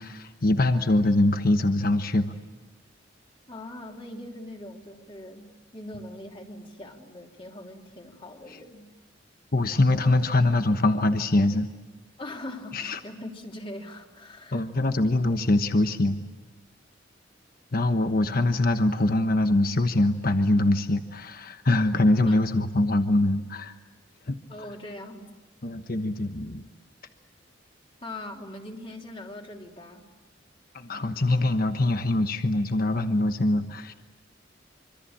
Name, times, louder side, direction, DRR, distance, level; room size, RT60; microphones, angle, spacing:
voice 1, 0.0-2.3 9.5-11.7 12.7-13.0 14.5-16.2 17.7-23.7 24.3-24.4 25.6-26.6 30.7-33.9, left 2 dB, 50° left, 8 dB, 1.2 m, -23 dB
voice 2, 3.5-5.5 5.7-8.9 12.2-14.7 22.3-22.4 24.5-25.3 28.0-30.0, left 1 dB, 30° left, 1 dB, 3.0 m, -41 dB
26.0 x 25.5 x 8.8 m, 1.2 s
head